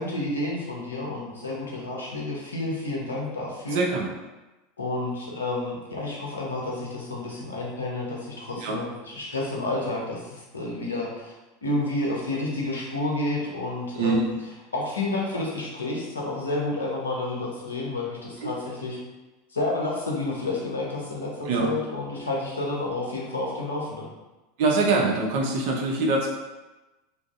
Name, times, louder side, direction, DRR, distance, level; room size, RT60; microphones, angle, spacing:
voice 1, 0.0-3.9 4.8-11.4 11.6-14.3 14.7-19.0 19.5-24.1, left 2 dB, 85° left, -2 dB, 0.6 m, -30 dB
voice 2, 3.7-4.1 8.6-8.8 14.0-14.2 18.4-18.5 21.5-21.7 24.6-26.3, right 3 dB, 60° right, -1 dB, 0.5 m, -23 dB
2.5 x 2.4 x 2.4 m, 1.1 s
figure-of-eight pair, 85°, 0 cm